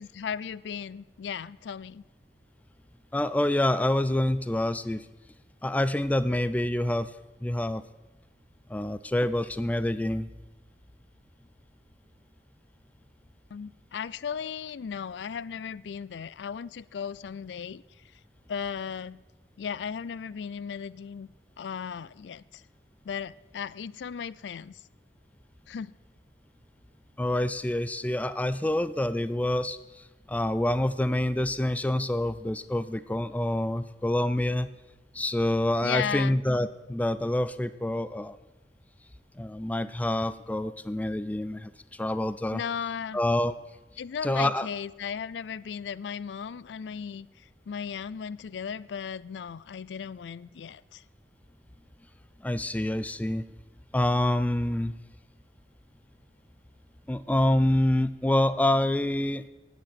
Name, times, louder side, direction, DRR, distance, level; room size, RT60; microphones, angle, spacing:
voice 1, 0.0-2.0 13.5-17.8 18.5-19.2 19.6-21.3 21.6-22.6 23.0-24.8 25.7-25.9 35.8-36.4 42.5-43.2 44.0-51.0, left 7 dB, 80° left, 21 dB, 0.4 m, -36 dB
voice 2, 3.1-5.1 5.6-7.1 7.4-7.8 8.7-10.3 27.2-34.7 35.1-38.4 39.4-42.6 43.1-43.5 44.2-44.7 52.4-53.4 53.9-54.9 57.1-59.5, left 1 dB, 10° left, 14 dB, 0.3 m, -27 dB
11.5 x 9.3 x 7.6 m, 1.1 s
head